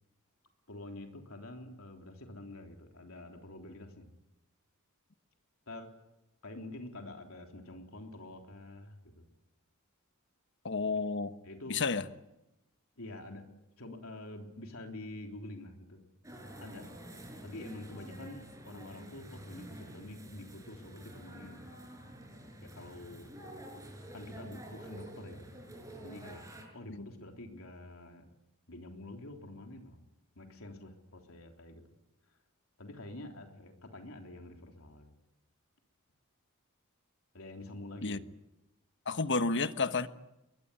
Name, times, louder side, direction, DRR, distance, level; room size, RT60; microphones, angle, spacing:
voice 1, 0.7-4.1 5.7-5.9 6.4-9.2 11.4-11.9 13.0-13.5 13.8-16.0 16.6-16.8 17.4-21.8 22.6-23.3 24.1-25.5 26.0-26.4 26.7-28.3 28.7-30.0 30.4-31.8 32.8-35.2 37.3-38.2, left 1 dB, 75° left, 4 dB, 3.6 m, -47 dB
voice 2, 10.6-11.4 11.7-12.0 26.9-27.1 38.0-38.2 39.1-40.1, left 4 dB, 55° left, 11 dB, 1.3 m, -31 dB
sound 1, 16.2-26.6, right 1 dB, 15° right, 5.9 m, -49 dB
22.0 x 22.0 x 9.9 m, 0.90 s
head